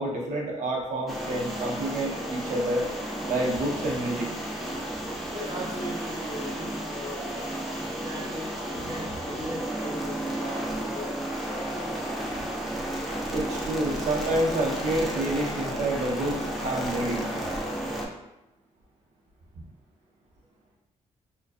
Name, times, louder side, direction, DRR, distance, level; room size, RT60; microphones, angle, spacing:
voice 1, 0.0-2.8 3.3-4.3 13.3-17.3, right 1 dB, 75° right, -2 dB, 0.6 m, -28 dB
sound 1, 1.1-18.1, right 1 dB, ahead, 0.3 m, -33 dB
voice 2, 5.3-7.6 8.0-11.3 11.5-12.5 19.5-19.6, equal, 45° right, -9 dB, 0.9 m, -39 dB
2.4 x 2.2 x 2.3 m, 0.94 s
cardioid pair, 140°, 13 cm